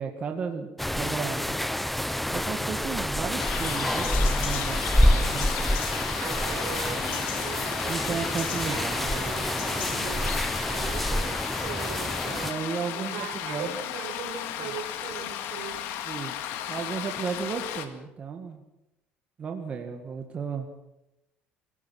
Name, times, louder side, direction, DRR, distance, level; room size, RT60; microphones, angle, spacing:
voice 1, 0.0-1.5 2.3-4.1 4.4-5.5 7.9-9.9 12.4-13.8 16.1-18.6 19.4-20.7, right 6 dB, 30° right, 4 dB, 2.0 m, -34 dB
sound 1, 0.8-12.5, equal, 5° left, 0.8 m, -27 dB
sound 2, 3.4-17.9, left 11 dB, 80° left, 2.2 m, -34 dB
voice 2, 5.0-5.4 6.2-8.8 9.1-12.5 12.9-15.8, right 7 dB, 80° right, 3 dB, 5.3 m, -40 dB
24.5 x 17.0 x 7.7 m, 0.90 s
cardioid pair, 145°, 4 cm